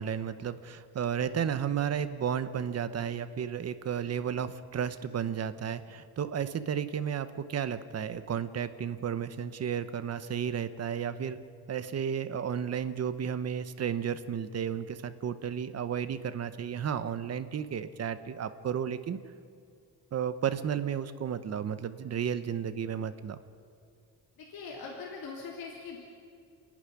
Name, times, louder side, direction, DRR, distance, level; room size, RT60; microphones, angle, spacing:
voice 1, 0.0-11.4 11.7-19.2 20.1-23.4, right 8 dB, 40° right, 12 dB, 1.0 m, -33 dB
voice 2, 24.4-26.0, left 4 dB, 70° left, -3 dB, 3.5 m, -41 dB
30.0 x 11.5 x 10.0 m, 2.4 s
cardioid pair, 170°, 37 cm